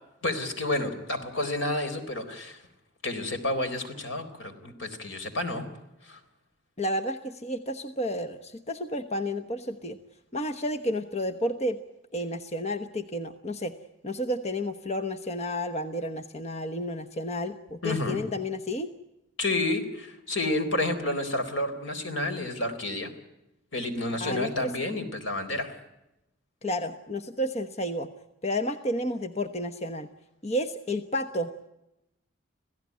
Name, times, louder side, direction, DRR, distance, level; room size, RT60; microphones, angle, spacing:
voice 1, 0.2-2.6 3.0-5.6 6.0-6.2 17.8-18.2 19.4-23.1 23.7-25.8, left 2 dB, 75° left, 7 dB, 4.0 m, -30 dB
voice 2, 6.8-10.0 10.3-11.8 12.1-13.7 14.0-18.9 24.2-24.7 26.6-28.1 28.4-30.1 30.4-31.7, left 1 dB, 35° left, 9 dB, 1.0 m, -31 dB
27.0 x 16.5 x 9.5 m, 0.92 s
head